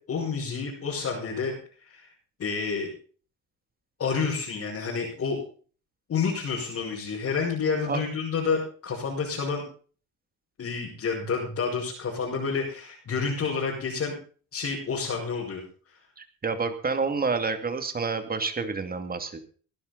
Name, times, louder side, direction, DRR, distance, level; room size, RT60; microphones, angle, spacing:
voice 1, 0.1-1.5 1.8-2.1 2.4-2.9 4.0-5.4 6.1-9.6 10.6-14.2 14.5-15.6, left 5 dB, 50° left, -5 dB, 6.1 m, -29 dB
voice 2, 16.2-19.4, right 4 dB, 30° right, 8 dB, 2.5 m, -29 dB
19.0 x 12.0 x 4.1 m, 0.41 s
cardioid pair, 105°, 31 cm